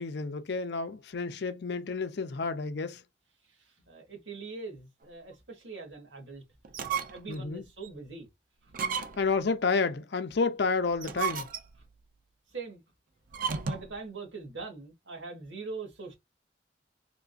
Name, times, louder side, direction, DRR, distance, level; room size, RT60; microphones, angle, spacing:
voice 1, 0.0-3.0 7.3-7.6 9.2-11.5, left 4 dB, 65° left, 0.5 m, -30 dB
voice 2, 3.4-6.4 6.9-8.3 8.6-8.7 12.5-12.8 13.4-16.2, right 4 dB, 90° right, 1.6 m, -42 dB
sound 1, 6.6-7.4 7.8-7.9 8.7-9.4 10.9-11.9 13.3-14.0, right 6 dB, 50° right, 0.5 m, -34 dB
3.7 x 2.5 x 2.4 m
head